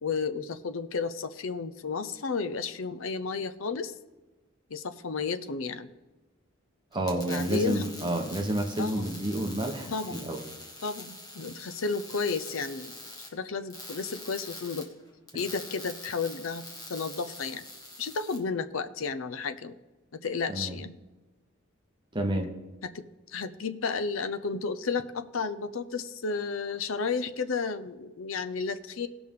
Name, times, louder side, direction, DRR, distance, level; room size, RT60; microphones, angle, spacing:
voice 1, 0.0-3.9 4.7-5.9 7.1-7.8 8.8-9.0 9.9-10.3 10.8-13.0 13.3-14.9 15.3-16.6 16.9-17.6 18.0-19.8 20.2-20.9 22.8-23.0 23.3-29.1, left 5 dB, 70° left, 10 dB, 0.6 m, -32 dB
sound 1, 6.9-18.4, left 1 dB, 20° left, 1.5 m, -44 dB
voice 2, 6.9-10.4 20.5-20.8 22.1-22.5, right 1 dB, 20° right, 3 dB, 1.1 m, -30 dB
17.5 x 6.1 x 3.7 m, 1.2 s
head